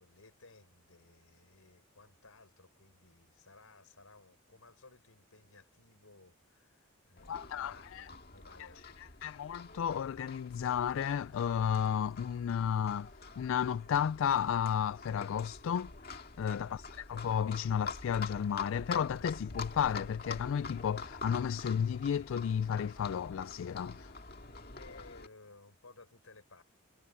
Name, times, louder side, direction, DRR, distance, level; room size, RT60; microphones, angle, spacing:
voice 1, 0.0-9.2 16.4-16.8 24.7-26.6, left 3 dB, 90° left, 5.1 m, -59 dB
Livestock farm animals working animals, 7.2-25.3, left 4 dB, 45° left, 2.2 m, -46 dB
voice 2, 7.3-8.1 8.6-8.7 9.0-13.1 13.4-16.8 17.1-24.1, left 8 dB, 70° left, 0.3 m, -33 dB
head